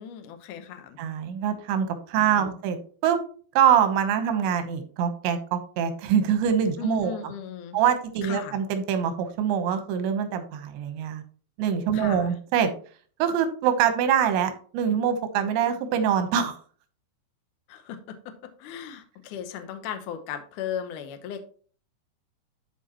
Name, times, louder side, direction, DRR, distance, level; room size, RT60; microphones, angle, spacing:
voice 1, 0.0-1.0 2.2-2.6 6.8-7.8 8.2-8.6 11.9-12.3 17.7-18.2 18.6-21.4, left 8 dB, 80° left, 7 dB, 1.8 m, -37 dB
voice 2, 1.0-3.2 3.6-7.2 7.7-11.2 11.6-12.7 13.2-16.6, right 8 dB, 90° right, 8 dB, 3.3 m, -24 dB
13.0 x 4.8 x 2.9 m, 0.43 s
omnidirectional pair, 5.0 m